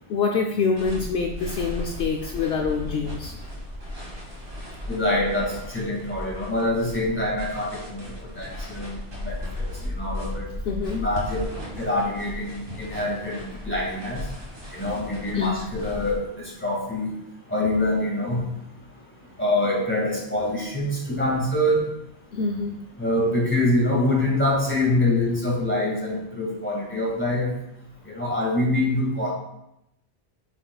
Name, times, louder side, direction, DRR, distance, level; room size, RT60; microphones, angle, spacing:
voice 1, 0.1-3.3 10.7-11.0 15.3-15.6 22.3-22.7, left 5 dB, 70° left, 2 dB, 0.7 m, -25 dB
sound 1, 0.8-16.2, left 1 dB, 65° right, 2.0 m, -36 dB
voice 2, 4.9-8.0 8.4-10.5 10.9-11.5 11.8-14.2 14.7-17.1 17.5-18.4 19.4-21.8 23.0-27.5 28.0-29.3, left 1 dB, 10° left, -3 dB, 1.7 m, -25 dB
8.2 x 5.4 x 2.3 m, 0.82 s
omnidirectional pair, 1.1 m